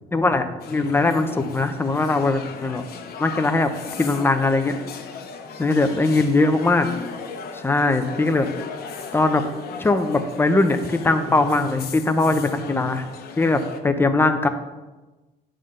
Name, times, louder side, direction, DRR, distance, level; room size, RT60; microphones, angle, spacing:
voice 1, 0.1-2.8 3.2-3.7 4.0-4.8 5.6-6.9 7.6-8.5 9.1-9.4 9.8-13.0 13.4-14.5, left 2 dB, 15° left, 8 dB, 0.7 m, -20 dB
sound 1, 0.6-13.8, left 5 dB, 65° left, 1.0 m, -37 dB
9.0 x 3.8 x 6.4 m, 1.1 s
cardioid pair, 110°, 17 cm